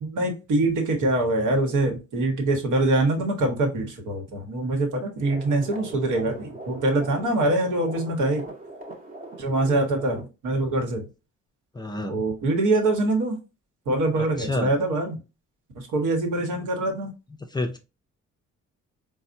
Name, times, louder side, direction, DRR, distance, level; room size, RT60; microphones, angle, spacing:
voice 1, 0.0-8.4 9.4-11.0 12.1-13.4 13.9-15.2 15.7-17.1, right 2 dB, 80° right, 1.1 m, -24 dB
sound 1, 5.2-10.2, right 2 dB, 30° right, 0.8 m, -41 dB
voice 2, 11.7-12.2 14.2-14.7 17.5-17.8, left 2 dB, 15° left, 0.4 m, -29 dB
4.1 x 2.1 x 2.5 m
cardioid pair, 90°, 30 cm